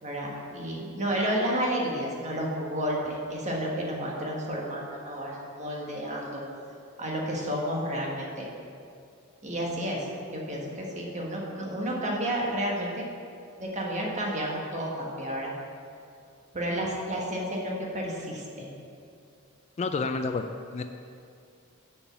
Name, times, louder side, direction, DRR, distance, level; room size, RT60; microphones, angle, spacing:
voice 1, 0.0-6.4 7.0-8.5 9.4-13.0 13.6-15.5 16.5-18.7, equal, 35° right, -2 dB, 1.5 m, -31 dB
voice 2, 19.8-20.8, left 3 dB, 30° left, 7 dB, 0.3 m, -30 dB
7.1 x 5.4 x 7.1 m, 2.5 s
head